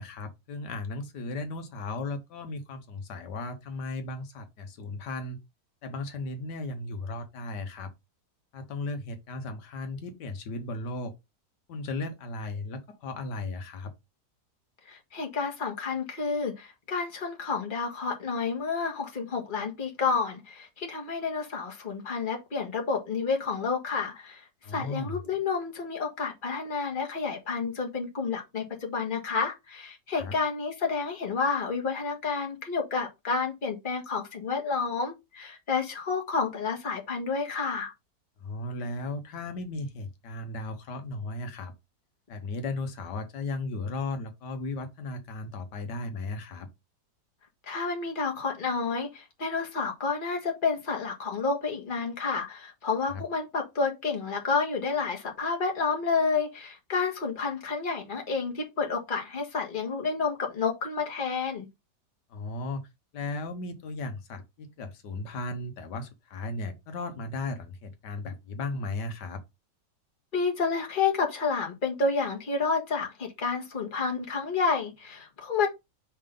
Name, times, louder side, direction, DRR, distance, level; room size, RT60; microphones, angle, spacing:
voice 1, 0.0-5.4 5.8-7.9 8.5-11.1 11.7-13.9 24.6-25.2 30.2-30.3 38.4-41.7 42.3-46.7 62.3-62.8 63.1-69.4, left 2 dB, 85° left, 1.6 m, -36 dB
voice 2, 14.9-24.4 24.7-37.9 47.7-61.7 70.3-75.7, left 4 dB, 30° left, 1.6 m, -30 dB
5.5 x 3.7 x 5.2 m
omnidirectional pair, 1.8 m